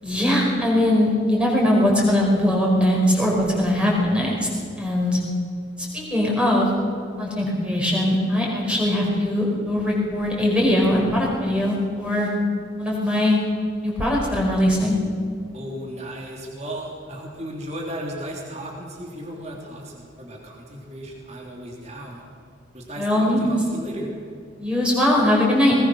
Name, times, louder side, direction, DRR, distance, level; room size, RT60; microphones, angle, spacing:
voice 1, 0.0-4.3 4.8-5.2 5.9-6.7 7.2-12.3 12.8-13.4 13.8-15.0 23.0-23.5 24.6-25.8, left 1 dB, 5° right, -3 dB, 5.0 m, -20 dB
voice 2, 15.5-22.2 22.7-24.1, equal, 35° right, -1 dB, 3.3 m, -35 dB
20.0 x 20.0 x 6.4 m, 2.2 s
head